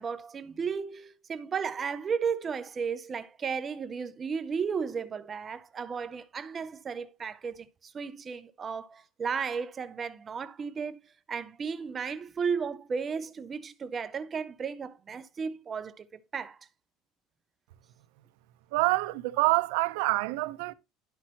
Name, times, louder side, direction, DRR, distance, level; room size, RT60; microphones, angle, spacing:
voice 1, 0.0-11.0 11.3-16.0 16.3-16.7, right 6 dB, 20° right, 0.4 m, -34 dB
voice 2, 18.7-20.7, right 21 dB, 80° right, 0.6 m, -26 dB
11.0 x 5.9 x 2.9 m
cardioid pair, 175°, 0 cm